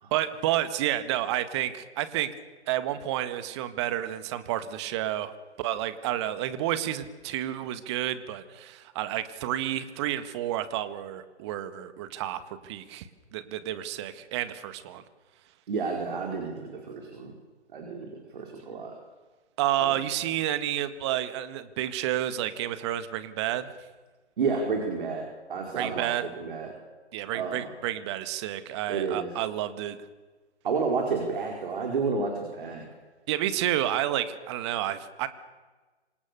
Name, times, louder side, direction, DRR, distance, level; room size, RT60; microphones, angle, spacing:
voice 1, 0.1-2.3 2.7-5.3 5.6-13.1 13.3-15.0 19.6-23.7 25.8-26.3 27.1-30.0 33.3-35.3, right 12 dB, 25° right, 12 dB, 1.8 m, -30 dB
voice 2, 15.7-17.3 17.7-18.9 19.8-19.9 24.4-26.7 27.3-27.7 28.9-29.3 30.6-32.8, right 4 dB, 45° right, 2 dB, 5.1 m, -31 dB
27.5 x 26.0 x 7.0 m, 1.3 s
figure-of-eight pair, 140°, 34 cm